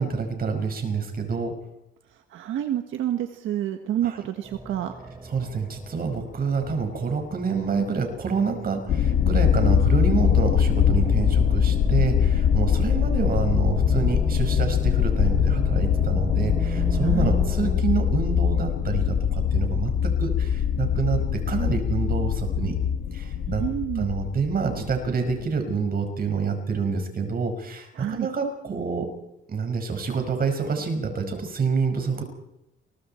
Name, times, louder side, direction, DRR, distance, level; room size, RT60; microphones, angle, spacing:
voice 1, 0.0-1.5 4.0-4.2 5.2-22.8 23.1-23.6 24.0-29.1 29.5-32.2, right 5 dB, 50° right, 5 dB, 5.6 m, -27 dB
voice 2, 2.3-4.9 17.0-17.3 23.5-24.1 28.0-28.3, right 11 dB, 80° right, 6 dB, 1.5 m, -28 dB
sound 1, 4.4-17.7, right 2 dB, 20° right, 6.7 m, -37 dB
sound 2, 8.9-25.3, left 8 dB, 75° left, 2.0 m, -22 dB
29.0 x 22.5 x 4.5 m, 0.86 s
cardioid pair, 90°, 20 cm